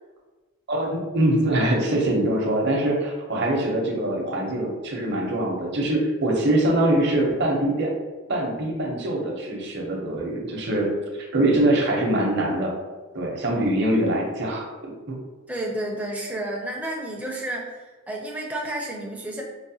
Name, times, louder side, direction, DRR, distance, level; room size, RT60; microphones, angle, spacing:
voice 1, 0.7-7.9 8.3-10.9 11.3-12.8 13.1-14.6 15.1-15.2, right 1 dB, 50° right, 0 dB, 0.7 m, -23 dB
voice 2, 15.5-19.4, right 1 dB, 5° right, -1 dB, 0.4 m, -31 dB
4.7 x 2.1 x 2.7 m, 1.3 s
head